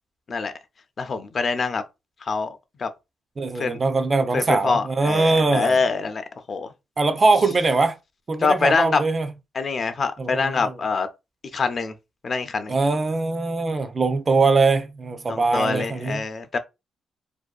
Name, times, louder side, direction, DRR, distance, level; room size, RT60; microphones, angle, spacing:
voice 1, 1.0-1.8 2.2-2.9 3.5-3.8 4.3-6.7 8.4-9.0 9.5-11.1 11.5-11.9 12.2-12.8 15.3-16.6, left 4 dB, 50° left, 0.4 m, -24 dB
voice 2, 3.4-5.8 7.0-8.0 8.3-9.3 10.2-10.7 12.7-16.3, right 3 dB, 35° right, 0.4 m, -22 dB
2.6 x 2.2 x 2.3 m
cardioid pair, 75°, 0 cm